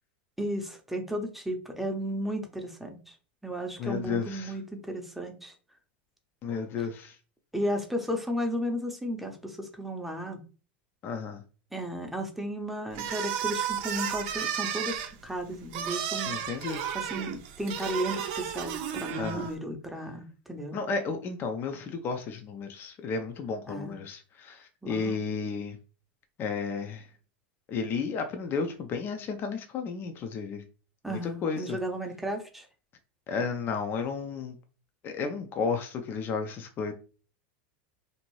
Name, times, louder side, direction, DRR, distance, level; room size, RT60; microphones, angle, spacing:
voice 1, 0.4-3.2 3.4-5.5 6.8-6.9 7.5-10.4 11.7-16.4 16.9-20.8 23.7-24.0 24.8-25.2 31.0-32.7, equal, 5° right, 0.7 m, -34 dB
voice 2, 3.8-4.5 6.4-7.2 11.0-11.4 16.3-16.8 19.1-19.5 20.7-25.8 26.4-27.1 27.7-30.6 31.1-31.8 33.3-34.6 35.0-36.9, left 5 dB, 35° left, 0.5 m, -33 dB
sound 1, 12.9-19.5, right 9 dB, 60° right, 0.6 m, -33 dB
2.7 x 2.5 x 3.1 m
hypercardioid pair, 100°, 6 cm